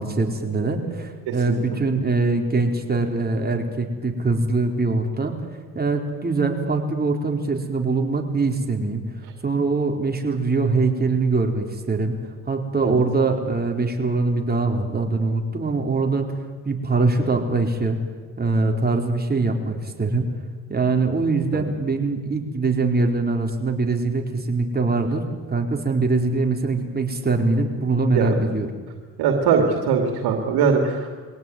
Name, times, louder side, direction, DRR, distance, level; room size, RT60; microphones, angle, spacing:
voice 1, 0.0-5.3 5.7-9.0 9.4-12.2 12.5-16.3 16.6-18.0 18.4-20.3 20.7-28.7, right 3 dB, 25° right, 2 dB, 4.4 m, -23 dB
voice 2, 29.2-31.3, right 5 dB, 85° right, 3 dB, 2.7 m, -21 dB
23.0 x 17.5 x 9.4 m, 1.5 s
cardioid pair, 75°, 37 cm